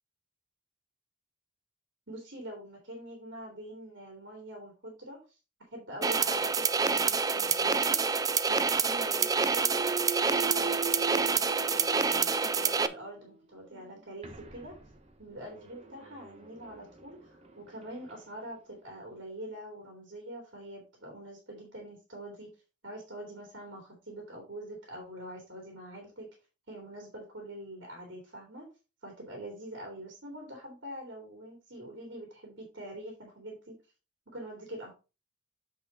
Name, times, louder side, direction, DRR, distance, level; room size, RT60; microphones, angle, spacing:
voice 1, 2.1-5.4 5.7-8.0 8.5-9.9 10.2-14.7 15.2-22.5 22.8-26.3 26.7-28.7 29.0-33.7 34.3-34.9, right 1 dB, 65° right, 0 dB, 2.7 m, -44 dB
sound 1, 6.0-12.9, right 5 dB, 20° right, 0.4 m, -27 dB
Thump thud, 9.1-13.1 13.6-18.2, right 5 dB, 35° right, 1.0 m, -41 dB
7.8 x 5.0 x 4.0 m, 0.31 s
head